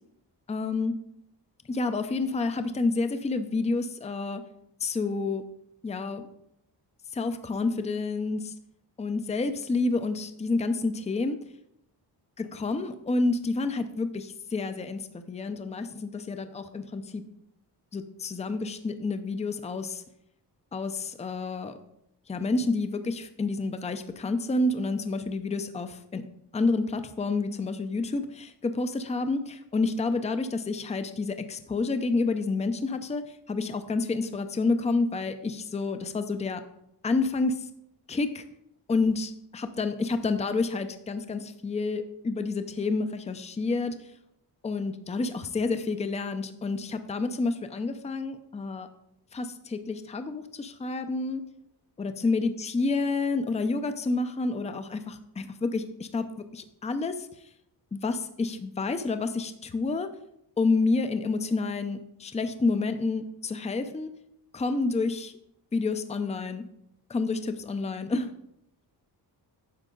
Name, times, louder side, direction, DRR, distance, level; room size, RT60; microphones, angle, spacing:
voice 1, 0.5-0.9 1.7-4.4 4.8-5.4 5.8-6.3 7.1-8.5 9.0-11.4 12.4-17.3 17.9-20.0 20.7-21.7 22.3-26.2 26.5-33.2 33.5-36.6 37.0-37.7 38.1-38.4 38.9-44.0 44.6-48.9 49.3-51.4 52.0-57.3 57.9-60.1 60.6-64.1 64.5-65.3 65.7-66.6 67.1-68.3, left 3 dB, 15° left, 9 dB, 0.5 m, -29 dB
9.9 x 6.6 x 3.8 m, 0.78 s
wide cardioid pair, 125°, 42 cm